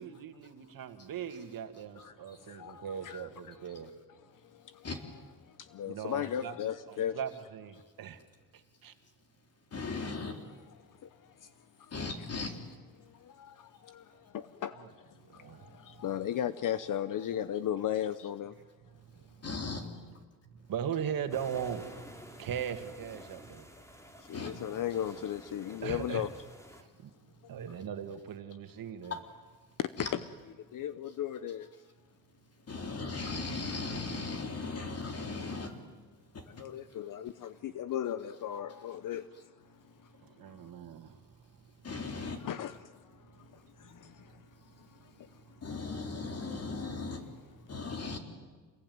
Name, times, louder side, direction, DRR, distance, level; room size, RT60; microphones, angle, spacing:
voice 1, 0.0-3.9 5.9-6.5 6.9-8.2 8.5-8.9 14.8-14.9 15.2-16.0 18.9-19.5 20.7-23.7 25.8-26.2 26.8-27.1 27.5-29.2 40.2-41.7 43.3-43.6 44.3-44.4 45.0-45.1 45.6-45.7, right 8 dB, 60° right, 2.1 m, -40 dB
voice 2, 2.0-3.3 3.6-3.8 4.3-4.9 5.4-7.2 9.8-10.1 10.4-11.9 12.2-12.3 13.0-18.6 24.2-26.3 29.8-30.1 30.6-31.7 36.5-40.7 42.4-45.7 47.6-47.7, left 10 dB, 55° left, 0.9 m, -38 dB
voice 3, 9.7-10.4 11.9-12.5 19.4-19.9 24.3-24.5 29.1-29.2 30.0-30.1 32.7-35.7 36.3-36.6 41.8-42.4 45.6-47.2 47.7-48.2, left 3 dB, 40° left, 3.9 m, -37 dB
sound 1, 21.3-26.8, equal, 5° left, 2.7 m, -51 dB
27.5 x 20.5 x 9.5 m
cardioid pair, 120°, 39 cm